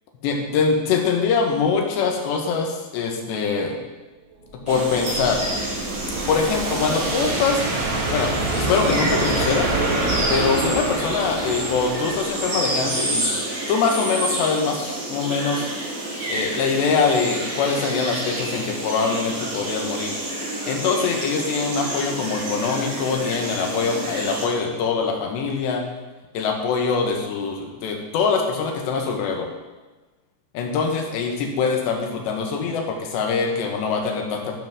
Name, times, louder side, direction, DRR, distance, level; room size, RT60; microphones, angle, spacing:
voice 1, 0.2-3.8 4.7-5.4 6.3-7.7 8.1-9.7 10.3-13.4 13.7-15.7 16.3-20.1 20.7-25.8 26.4-29.5 30.6-34.5, left 5 dB, 75° left, 2 dB, 3.5 m, -23 dB
sound 1, 4.4-13.3, right 2 dB, 90° right, 5.0 m, -26 dB
sound 2, 4.7-24.5, right 1 dB, 55° right, 6.5 m, -29 dB
12.0 x 11.5 x 3.7 m, 1.2 s
omnidirectional pair, 5.2 m